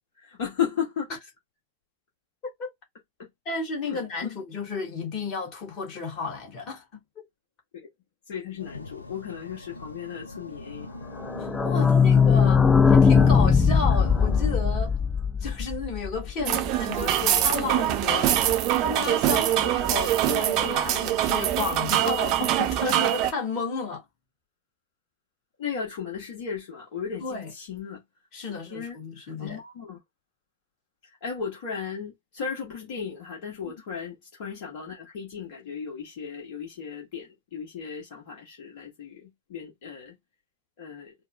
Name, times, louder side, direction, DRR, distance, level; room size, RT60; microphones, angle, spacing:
voice 1, 0.2-1.1 3.2-3.3 3.8-4.3 7.7-7.9 8.3-10.9 11.7-11.9 16.4-16.6 25.6-28.0 28.7-30.0 31.2-40.1 40.8-41.1, left 7 dB, 50° left, 1.3 m, -35 dB
voice 2, 3.4-6.8 7.2-7.3 11.4-14.9 15.4-24.0 27.2-27.5 28.3-29.6, left 4 dB, 35° left, 1.7 m, -33 dB
sound 1, 8.6-14.4, left 2 dB, 80° left, 0.6 m, -39 dB
sound 2, 11.2-16.7 17.0-17.1 17.3-17.4 17.7-17.8, left 6 dB, 15° left, 0.4 m, -20 dB
sound 3, 16.5-23.3, right 12 dB, 40° right, 0.6 m, -24 dB
4.5 x 2.1 x 2.4 m
figure-of-eight pair, 90°, 0 cm